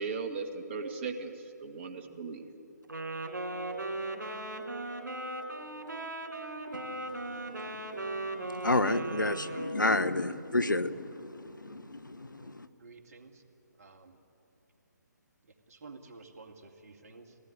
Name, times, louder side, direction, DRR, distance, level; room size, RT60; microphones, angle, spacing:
voice 1, 0.0-2.4, right 4 dB, 35° right, 4 dB, 1.9 m, -37 dB
Wind instrument woodwind instrument, 2.8-10.0, right 2 dB, 75° right, 3.3 m, -38 dB
voice 2, 8.6-12.7, left 2 dB, 90° left, 14 dB, 0.9 m, -30 dB
voice 3, 12.8-13.4 13.8-14.2 15.7-17.4, right 3 dB, 50° right, 3 dB, 2.3 m, -51 dB
19.5 x 17.5 x 9.8 m, 2.8 s
figure-of-eight pair, 140°, 10 cm